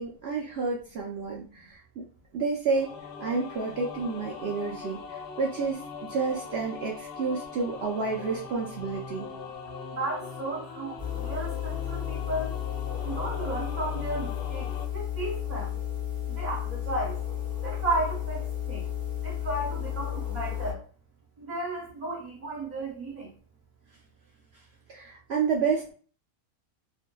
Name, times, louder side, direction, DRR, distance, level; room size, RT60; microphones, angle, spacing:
voice 1, 0.0-1.4 2.0-2.1 2.3-2.9 3.2-5.0 5.4-5.8 6.1-9.3 24.9-25.9, right 4 dB, 65° right, -2 dB, 0.6 m, -29 dB
sound 1, 2.7-14.9, left 5 dB, 75° left, 0.5 m, -41 dB
voice 2, 9.9-12.5 13.0-15.7 16.4-17.2 17.6-18.9 19.2-20.8 21.4-23.3, right 2 dB, 35° right, -5 dB, 1.0 m, -34 dB
sound 2, 11.0-20.7, left 10 dB, 10° left, 0.7 m, -33 dB
2.7 x 2.4 x 2.2 m, 0.41 s
omnidirectional pair, 1.5 m